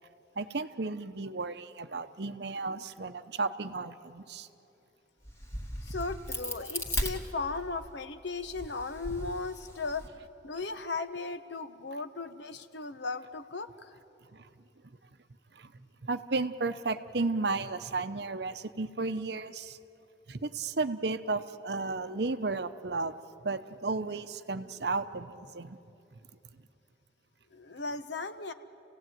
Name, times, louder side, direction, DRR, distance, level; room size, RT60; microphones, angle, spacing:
voice 1, 0.4-4.5 14.3-14.5 15.5-15.7 16.0-19.8 20.3-23.1 23.4-25.8, right 3 dB, 60° right, 11 dB, 0.8 m, -33 dB
Crack, 5.2-7.9 8.4-10.1, equal, 15° left, 1.8 m, -37 dB
voice 2, 5.8-10.1 10.4-13.9 27.5-28.5, left 3 dB, 70° left, 10 dB, 1.0 m, -36 dB
29.5 x 17.0 x 9.2 m, 2.9 s
head